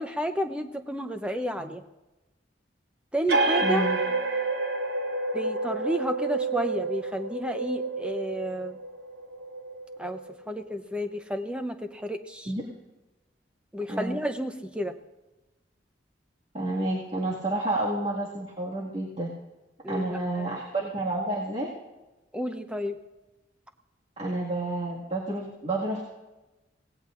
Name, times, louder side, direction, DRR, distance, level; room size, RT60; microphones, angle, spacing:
voice 1, 0.0-1.8 3.1-3.9 5.3-8.8 10.0-10.2 10.5-12.5 13.7-14.9 19.8-20.6 22.3-23.0, equal, 5° right, 6 dB, 0.7 m, -31 dB
sound 1, 3.3-10.5, right 3 dB, 60° right, 1.1 m, -29 dB
voice 2, 3.6-4.0 12.5-12.6 13.9-14.2 16.5-19.3 19.9-21.7 24.2-26.0, right 2 dB, 35° right, -6 dB, 1.9 m, -30 dB
26.5 x 18.0 x 2.5 m, 1.1 s
head